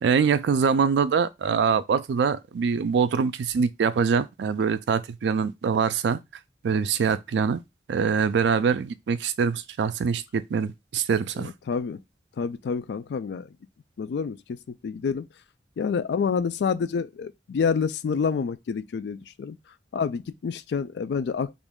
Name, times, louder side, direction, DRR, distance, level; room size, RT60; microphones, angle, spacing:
voice 1, 0.0-6.2 6.6-7.6 7.9-11.5, right 6 dB, 75° right, 0.3 m, -24 dB
voice 2, 11.4-12.0 12.4-13.5 14.0-14.4 14.7-15.3 15.8-19.6 19.9-21.5, left 6 dB, 70° left, 0.3 m, -28 dB
3.0 x 2.5 x 3.5 m
head